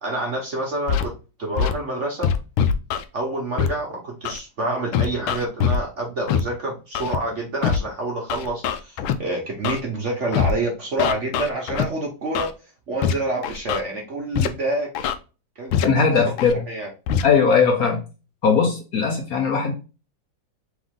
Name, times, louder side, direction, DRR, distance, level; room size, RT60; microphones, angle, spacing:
voice 1, 0.0-2.3 3.1-12.5 12.9-14.9 15.6-16.9, right 2 dB, 45° right, 1.1 m, -28 dB
Scratching (performance technique), 0.9-1.0 1.6-1.7 2.2-3.0 3.6-3.7 4.2-4.4 4.9-5.8 6.3-6.4 6.9-7.2 7.6-7.8 8.3-9.1 9.6-9.8 10.3-10.5 11.0-11.8 12.3-12.5 13.0-13.1 13.4-13.8 14.3-14.5 14.9-15.1 15.7-15.8 16.4-16.5 17.1-17.2, left 8 dB, 85° left, 1.4 m, -22 dB
voice 2, 15.8-16.6 17.2-18.0 18.4-19.7, left 5 dB, 60° left, 1.1 m, -19 dB
3.8 x 3.5 x 3.6 m
omnidirectional pair, 2.2 m